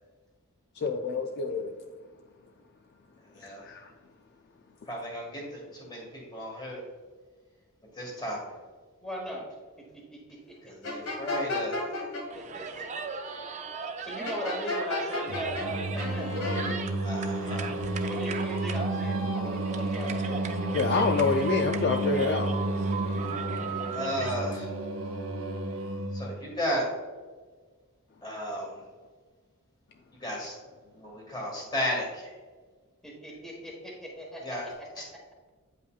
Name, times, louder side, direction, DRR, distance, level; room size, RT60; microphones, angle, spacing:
voice 1, 0.8-1.8 3.4-3.9 20.7-22.5, left 4 dB, 45° left, 4 dB, 0.3 m, -27 dB
voice 2, 3.2-3.7 4.9-6.8 7.9-8.6 10.6-11.9 17.0-17.7 23.9-24.7 26.1-26.9 28.2-28.8 30.1-30.6 30.9-32.4 34.4-34.7 35.0-35.1, equal, 20° left, -2 dB, 1.7 m, -34 dB
voice 3, 9.0-9.5 9.9-10.6 12.3-12.9 14.0-16.4 18.1-20.5 33.0-34.9, equal, ahead, -2 dB, 1.2 m, -39 dB
sound 1, 10.8-12.2 14.2-15.7 15.9-16.7, left 2 dB, 75° left, 1.6 m, -33 dB
sound 2, 12.3-24.3, right 4 dB, 30° right, 0.5 m, -38 dB
Singing, 15.3-26.4, right 2 dB, 65° right, 0.7 m, -31 dB
8.5 x 5.5 x 2.4 m, 1.4 s
head